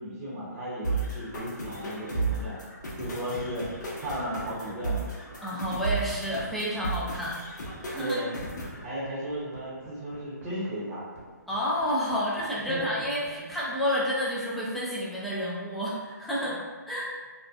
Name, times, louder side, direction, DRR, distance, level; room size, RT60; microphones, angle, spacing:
voice 1, 0.0-2.6 3.0-3.7 4.0-5.0 8.0-8.4 8.8-11.0 12.7-13.0 13.3-13.5 16.5-16.6, equal, 20° right, -10 dB, 0.8 m, -35 dB
sound 1, 0.8-8.8, right 3 dB, 70° left, 0.7 m, -34 dB
sound 2, 1.4-14.3, right 3 dB, 50° right, 0.8 m, -50 dB
voice 2, 5.4-7.4 7.8-8.2 11.5-16.6 16.9-17.1, equal, ahead, -8 dB, 0.3 m, -30 dB
2.6 x 2.1 x 2.3 m, 1.4 s
figure-of-eight pair, 140°, 10 cm